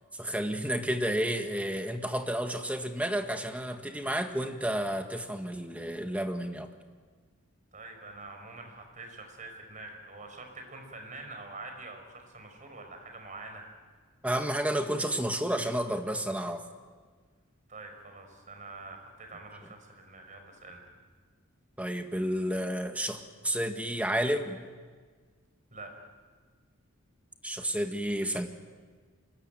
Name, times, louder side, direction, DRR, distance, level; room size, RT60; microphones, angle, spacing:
voice 1, 0.2-6.7 14.2-16.6 21.8-24.7 27.4-28.5, right 1 dB, 5° right, 5 dB, 1.7 m, -31 dB
voice 2, 7.7-13.6 17.7-20.8 25.7-25.9, right 2 dB, 35° right, 4 dB, 5.1 m, -45 dB
25.0 x 21.0 x 9.2 m, 1.5 s
head